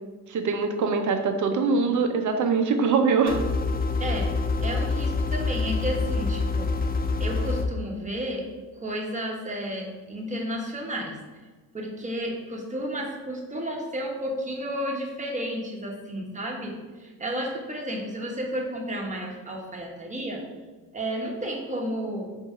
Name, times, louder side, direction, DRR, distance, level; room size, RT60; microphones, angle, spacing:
voice 1, 0.3-3.4, right 4 dB, 50° right, 5 dB, 0.7 m, -23 dB
sound 1, 3.3-7.7, left 3 dB, 25° left, 0.5 m, -26 dB
voice 2, 4.0-4.3 4.6-6.7 7.2-8.5 8.7-11.1 11.7-20.4 20.9-22.3, equal, 20° right, -1 dB, 1.2 m, -32 dB
3.9 x 2.7 x 4.8 m, 1.3 s
supercardioid pair, 70°, 37 cm